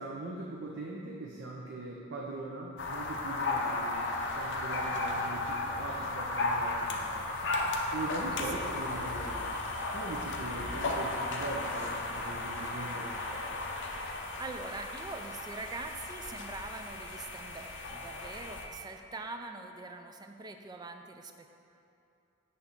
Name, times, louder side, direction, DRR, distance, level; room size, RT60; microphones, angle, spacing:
voice 1, 0.0-4.0 4.4-7.4 7.9-9.5 9.9-13.5, right 2 dB, 60° right, -2 dB, 0.6 m, -41 dB
sound 1, 2.8-18.6, left 2 dB, 60° left, 0.7 m, -35 dB
voice 2, 8.2-8.5 13.9-21.5, right 3 dB, 20° right, 5 dB, 0.3 m, -43 dB
8.3 x 3.2 x 5.7 m, 2.9 s
head